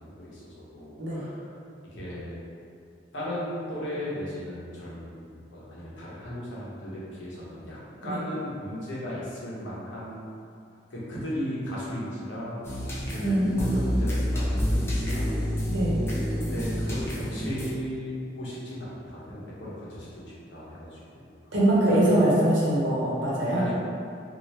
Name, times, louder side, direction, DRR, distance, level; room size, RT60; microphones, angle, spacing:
voice 1, 0.0-1.5 1.9-2.4 3.1-10.3 10.9-12.6 13.1-15.4 16.3-21.5 21.9-22.1 23.6-23.7, equal, 85° left, -7 dB, 0.9 m, -36 dB
sound 1, 12.6-17.7, equal, 15° left, 0.6 m, -28 dB
voice 2, 13.2-13.7 15.7-16.0 21.5-23.6, right 1 dB, 85° right, -7 dB, 0.9 m, -23 dB
2.8 x 2.6 x 3.2 m, 2.4 s
head